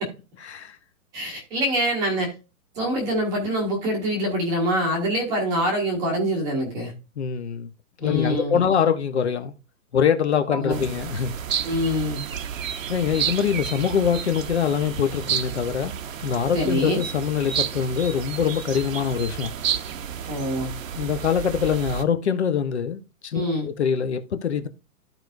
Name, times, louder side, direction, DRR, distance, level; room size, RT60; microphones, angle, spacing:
voice 1, 1.1-2.3 2.7-6.9 8.0-8.6 10.5-10.9 11.6-12.2 16.5-17.0 20.3-20.7 23.3-23.7, equal, 10° right, 0.9 m, -25 dB
voice 2, 7.2-7.7 8.0-9.6 9.9-11.3 12.9-15.9 16.2-19.5 21.0-24.7, left 7 dB, 45° left, 0.9 m, -24 dB
sound 1, 10.7-22.0, right 8 dB, 60° right, 0.9 m, -31 dB
14.0 x 4.7 x 2.5 m
hypercardioid pair, 175°, 45 cm